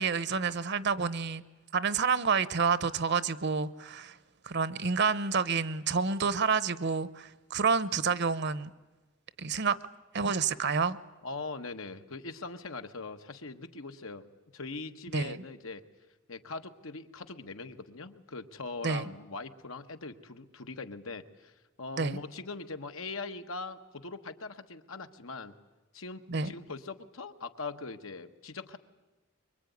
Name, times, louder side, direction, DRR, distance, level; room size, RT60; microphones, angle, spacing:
voice 1, 0.0-1.4 1.7-4.2 4.4-8.7 9.4-9.8 10.1-11.0 15.1-15.4 18.8-19.1 22.0-22.2 26.3-26.5, right 5 dB, 55° right, 0.9 m, -29 dB
voice 2, 11.2-14.2 14.5-15.8 16.3-21.5 21.8-25.5 25.9-28.8, left 3 dB, 90° left, 1.4 m, -41 dB
24.5 x 23.0 x 9.5 m
head